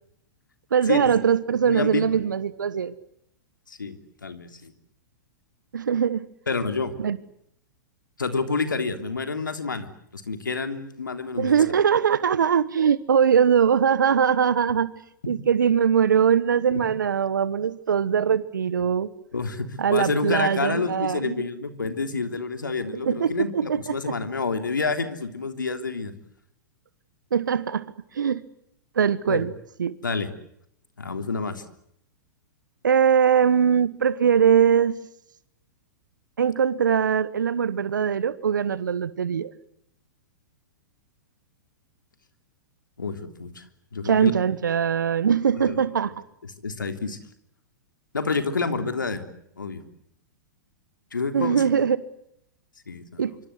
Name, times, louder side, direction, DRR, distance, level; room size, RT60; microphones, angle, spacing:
voice 1, 0.7-2.9 5.7-6.3 7.0-7.2 11.4-14.9 15.3-19.1 19.8-21.4 23.0-23.9 27.3-27.8 28.1-28.4 28.9-29.5 29.8-30.0 32.8-35.0 36.4-39.5 44.0-46.1 51.3-52.0 53.2-53.3, right 7 dB, 75° right, 16 dB, 1.2 m, -21 dB
voice 2, 1.6-2.1 3.7-4.7 6.5-6.9 8.2-11.5 16.7-16.8 19.3-26.1 29.3-29.4 30.0-30.3 31.0-31.6 43.0-43.6 43.9-44.4 45.7-45.8 46.6-47.2 48.1-49.2 49.5-49.8 51.1-51.6 52.9-53.3, left 4 dB, 85° left, 8 dB, 3.3 m, -28 dB
25.5 x 25.5 x 8.1 m, 0.75 s
hypercardioid pair, 110°, 10 cm